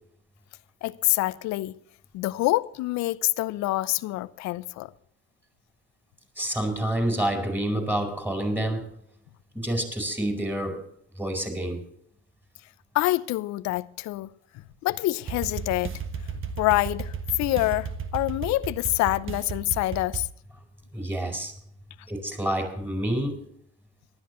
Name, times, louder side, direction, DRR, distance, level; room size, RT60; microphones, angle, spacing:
voice 1, 0.8-1.7 2.1-4.9 12.9-14.3 14.8-15.9 16.6-20.3, left 18 dB, 65° left, 0.7 m, -26 dB
voice 2, 6.4-8.9 9.5-10.8 11.2-11.8 20.9-21.5 22.1-23.4, right 1 dB, 5° right, 4.5 m, -28 dB
sound 1, 15.3-20.3, right 6 dB, 40° right, 1.4 m, -34 dB
19.0 x 12.0 x 3.1 m
supercardioid pair, 75°, 30 cm